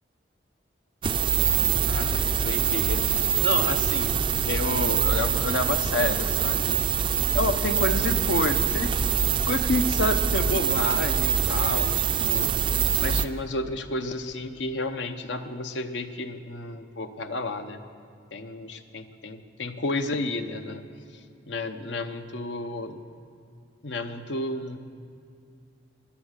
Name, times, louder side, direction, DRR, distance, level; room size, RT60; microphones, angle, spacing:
sound 1, 1.0-13.3, right 8 dB, 30° right, 0.3 m, -24 dB
voice 1, 1.9-7.1 7.3-8.9 9.4-12.6 13.0-17.8 18.3-20.8 21.1-23.0 23.8-24.8, left 2 dB, 80° left, 8 dB, 0.8 m, -30 dB
11.5 x 10.5 x 8.1 m, 2.4 s
head